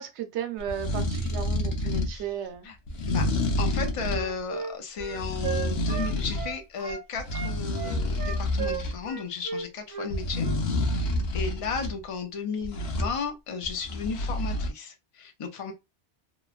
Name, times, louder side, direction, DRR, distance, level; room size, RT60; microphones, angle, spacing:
voice 1, 0.0-2.7, right 9 dB, 90° right, 0.9 m, -35 dB
sound 1, 0.6-2.2 2.9-4.3 5.0-6.5 6.9-9.0 10.1-11.9 12.6-13.1 13.6-14.7, left 1 dB, 65° left, 0.9 m, -28 dB
voice 2, 1.8-2.3 2.6-2.8 3.1-3.3 3.6-10.5 10.9-15.7, left 5 dB, 40° left, 0.5 m, -34 dB
Wind instrument woodwind instrument, 3.6-7.0 7.3-10.6, right 5 dB, 45° right, 0.8 m, -35 dB
3.0 x 2.2 x 2.4 m
omnidirectional pair, 1.1 m